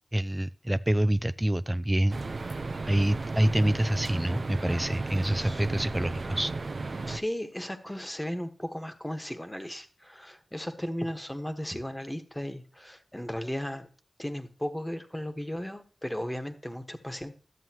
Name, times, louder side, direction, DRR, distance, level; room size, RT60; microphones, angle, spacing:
voice 1, 0.1-2.4 2.9-6.5, right 1 dB, 15° right, 13 dB, 0.4 m, -26 dB
sound 1, 2.1-7.2, right 3 dB, 65° right, 0.7 m, -34 dB
voice 2, 5.3-5.6 7.0-13.9 14.2-17.4, equal, 10° left, 7 dB, 1.5 m, -36 dB
13.0 x 7.5 x 3.0 m, 0.39 s
cardioid pair, 45°, 0 cm